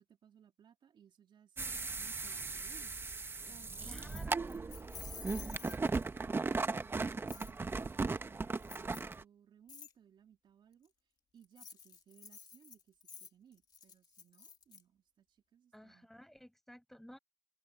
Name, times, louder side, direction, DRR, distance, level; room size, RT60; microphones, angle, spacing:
voice 1, 0.0-3.0 3.5-4.2 4.5-7.0 7.3-10.9 11.3-16.1, right 8 dB, 60° right, 3.1 m, -63 dB
sound 1, 1.6-9.2, right 3 dB, 25° right, 1.0 m, -37 dB
voice 2, 3.8-4.6 15.7-17.2, equal, 5° left, 5.9 m, -55 dB
Keys jangling, 3.9-6.2 7.3-7.5 8.6-9.1 9.7-9.9 11.4-14.8, left 6 dB, 50° left, 2.0 m, -51 dB
open air
cardioid pair, 100°, 9 cm